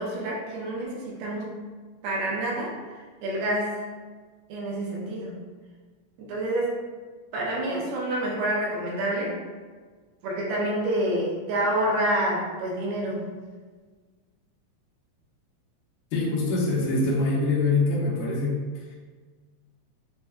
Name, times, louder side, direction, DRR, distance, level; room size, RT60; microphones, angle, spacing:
voice 1, 0.0-1.6 2.0-2.8 3.2-3.8 4.5-5.4 6.2-6.8 7.3-9.4 10.2-13.3, right 1 dB, 80° right, -3 dB, 2.6 m, -28 dB
voice 2, 16.1-18.7, left 3 dB, 80° left, -6 dB, 1.8 m, -24 dB
6.7 x 2.3 x 2.2 m, 1.4 s
omnidirectional pair, 4.5 m